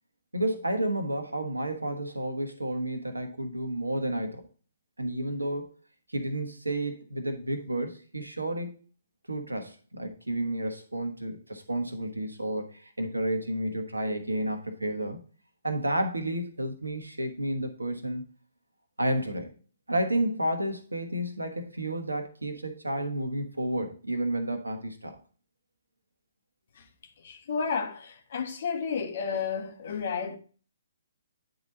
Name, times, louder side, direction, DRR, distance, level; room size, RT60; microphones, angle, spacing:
voice 1, 0.3-4.4 5.0-5.7 6.1-8.7 9.3-15.2 15.6-18.3 19.0-19.5 19.9-25.1, right 1 dB, 85° right, 1.2 m, -31 dB
voice 2, 27.2-30.4, left 6 dB, 55° left, 1.2 m, -32 dB
9.3 x 4.0 x 3.9 m
figure-of-eight pair, 130°, 0 cm